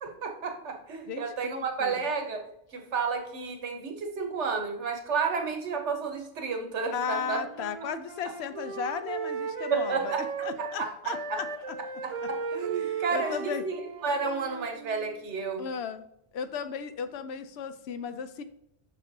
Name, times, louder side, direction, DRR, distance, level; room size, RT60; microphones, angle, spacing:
voice 1, 0.0-7.4 9.7-11.4 12.0-15.6, right 5 dB, 85° right, 4 dB, 1.3 m, -32 dB
voice 2, 1.1-1.9 6.9-11.8 12.8-13.6 15.6-16.0 16.3-18.4, left 7 dB, 70° left, 11 dB, 0.8 m, -35 dB
Wind instrument woodwind instrument, 7.1-10.8 11.1-15.2, right 5 dB, 45° right, 0.4 m, -36 dB
6.2 x 5.8 x 2.7 m, 0.78 s
omnidirectional pair, 1.2 m